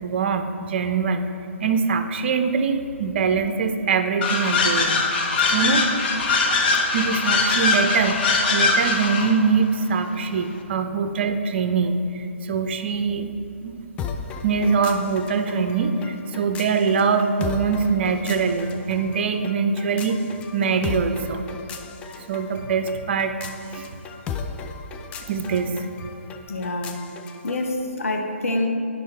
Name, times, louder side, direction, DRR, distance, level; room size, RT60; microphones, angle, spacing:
voice 1, 0.0-1.3 1.6-5.1 5.5-5.9 6.9-13.3 13.6-13.8 14.4-20.2 20.5-21.4 22.3-23.4 23.7-23.9 25.3-25.9, right 5 dB, 50° right, 7 dB, 0.6 m, -23 dB
sound 1, 4.2-9.4, left 3 dB, 45° left, 0.9 m, -21 dB
sound 2, 14.0-27.7, left 5 dB, 15° left, 0.4 m, -36 dB
voice 2, 26.5-27.0 27.4-28.7, left 2 dB, 80° left, 3 dB, 1.1 m, -26 dB
9.2 x 5.4 x 4.4 m, 2.7 s
figure-of-eight pair, 135°, 7 cm